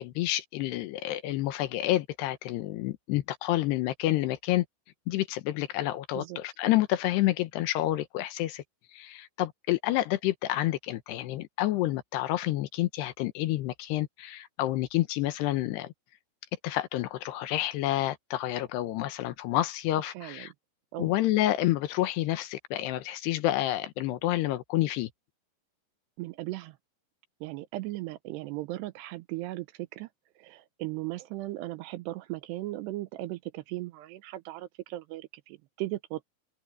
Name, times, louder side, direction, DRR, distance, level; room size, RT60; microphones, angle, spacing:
voice 1, 0.0-4.7 5.1-8.6 8.9-15.9 16.6-20.5 21.0-25.1, left 15 dB, 75° left, 2.9 m, -29 dB
voice 2, 20.1-20.5 20.9-21.1 26.2-26.8 27.4-30.1 30.4-36.3, right 17 dB, 80° right, 2.7 m, -37 dB
open air
omnidirectional pair, 5.2 m